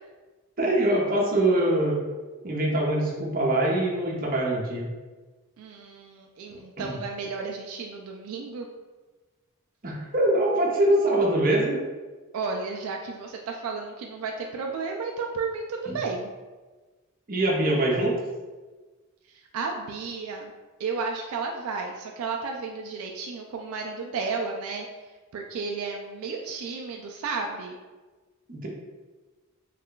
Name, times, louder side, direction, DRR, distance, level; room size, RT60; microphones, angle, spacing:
voice 1, 0.6-2.0 2.4-4.9 6.5-7.0 9.8-11.8 15.9-16.0 17.3-18.1 28.5-28.7, right 1 dB, 40° right, -3 dB, 0.7 m, -23 dB
voice 2, 5.6-8.7 12.3-16.3 19.3-20.5 20.8-24.9 25.3-27.8, right 4 dB, 75° right, 1 dB, 0.3 m, -33 dB
3.2 x 2.2 x 3.7 m, 1.3 s
head